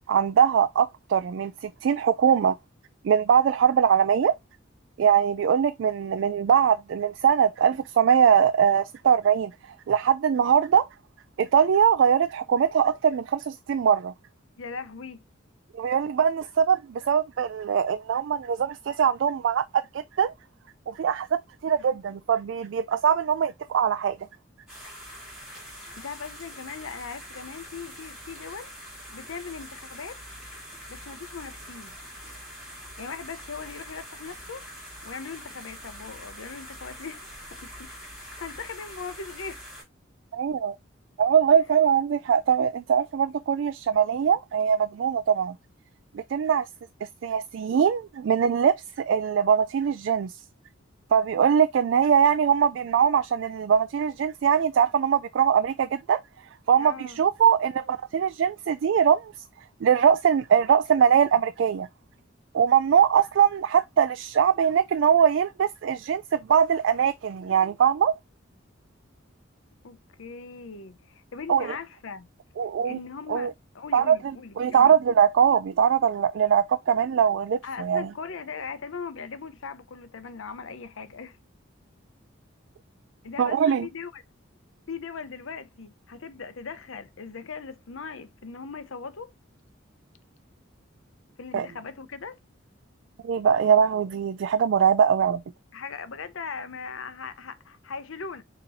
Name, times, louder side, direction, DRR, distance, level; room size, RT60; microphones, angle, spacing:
voice 1, 0.1-2.6 3.0-4.4 5.0-9.5 9.9-10.9 11.4-14.1 15.7-20.3 20.9-24.2 40.3-40.8 41.2-45.5 46.1-46.7 47.2-50.4 51.1-56.2 56.7-59.5 59.8-61.9 62.5-68.2 71.5-71.7 72.6-73.0 73.3-73.5 73.9-74.2 74.6-78.1 83.4-83.9 91.5-91.7 93.2-95.4, right 8 dB, 65° right, 0.3 m, -22 dB
voice 2, 14.6-15.2 25.9-28.7 29.1-30.2 30.9-32.0 33.0-34.6 35.0-39.6 41.5-41.6 56.7-57.2 69.8-72.3 72.8-74.9 77.6-81.4 83.2-84.2 84.9-89.3 91.4-92.4 95.7-98.4, left 5 dB, 80° left, 0.7 m, -39 dB
sound 1, 24.7-39.8, equal, 5° right, 3.0 m, -44 dB
6.8 x 3.0 x 2.5 m
head